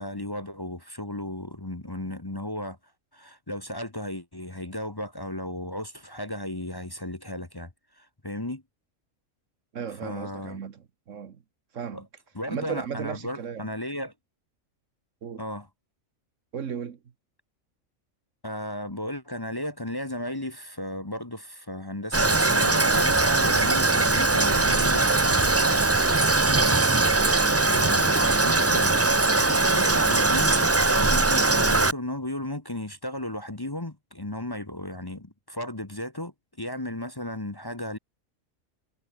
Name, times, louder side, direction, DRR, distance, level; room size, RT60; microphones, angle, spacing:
voice 1, 0.0-2.8 3.1-8.6 10.0-10.6 11.9-12.0 12.3-14.1 15.4-15.7 18.4-25.8 26.4-26.9 27.7-38.0, left 1 dB, 15° left, 1.3 m, -34 dB
voice 2, 9.7-11.4 11.7-12.0 12.5-13.7 15.2-15.4 16.5-17.0 27.7-27.8, right 7 dB, 65° right, 1.5 m, -35 dB
Toilet flush, 22.1-31.9, right 3 dB, 20° right, 0.4 m, -21 dB
omnidirectional pair, 1.4 m